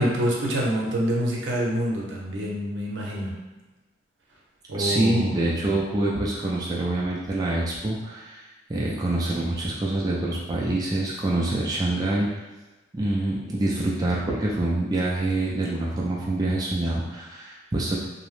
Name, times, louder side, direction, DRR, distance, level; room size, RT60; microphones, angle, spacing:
voice 1, 0.0-3.4 4.7-5.3, equal, 70° right, -3 dB, 0.6 m, -26 dB
voice 2, 4.7-12.3 12.9-18.0, right 2 dB, 20° right, -5 dB, 0.3 m, -26 dB
2.7 x 2.0 x 3.1 m, 1.2 s
head